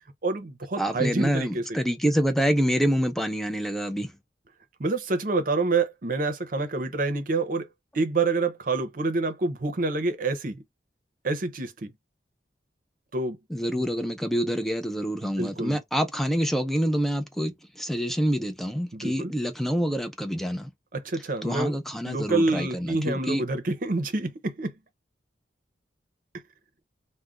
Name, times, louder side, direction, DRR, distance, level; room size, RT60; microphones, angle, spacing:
voice 1, 0.2-1.8 4.8-7.7 7.9-10.6 11.2-11.9 13.1-13.4 15.2-15.8 18.9-19.3 20.9-21.7 22.0-24.7, right 3 dB, 50° right, 0.7 m, -27 dB
voice 2, 0.8-4.1 13.5-20.7 21.4-23.4, equal, ahead, 0.4 m, -26 dB
2.5 x 2.2 x 3.4 m
head